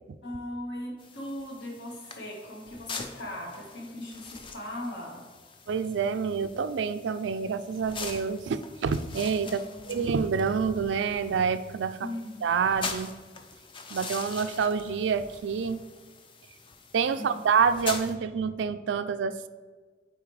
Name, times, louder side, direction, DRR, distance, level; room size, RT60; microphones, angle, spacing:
voice 1, 0.2-5.3 9.4-10.0 12.0-12.4 17.2-17.4, left 1 dB, 70° left, -1 dB, 1.5 m, -39 dB
sound 1, 1.0-18.1, left 4 dB, 30° left, 0.5 m, -43 dB
voice 2, 5.7-9.6 9.9-12.0 12.4-13.1 13.9-15.8 16.9-19.5, right 6 dB, 80° right, 12 dB, 0.4 m, -27 dB
8.3 x 4.2 x 3.2 m, 1.4 s
head